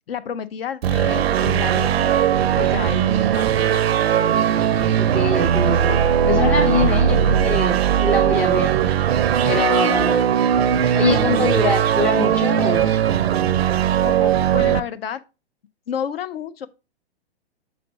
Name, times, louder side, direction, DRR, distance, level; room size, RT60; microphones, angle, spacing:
voice 1, 0.1-3.9 6.8-7.0 9.8-9.9 14.0-15.2 15.9-16.7, left 8 dB, 65° left, 0.7 m, -31 dB
sound 1, 0.8-14.8, right 9 dB, 70° right, 0.6 m, -19 dB
voice 2, 5.0-8.8 9.4-10.2 10.9-13.1, left 3 dB, 5° left, 0.4 m, -23 dB
sound 2, 5.3-8.6, left 6 dB, 40° left, 1.5 m, -39 dB
6.4 x 4.2 x 4.0 m
hypercardioid pair, 125°, 32 cm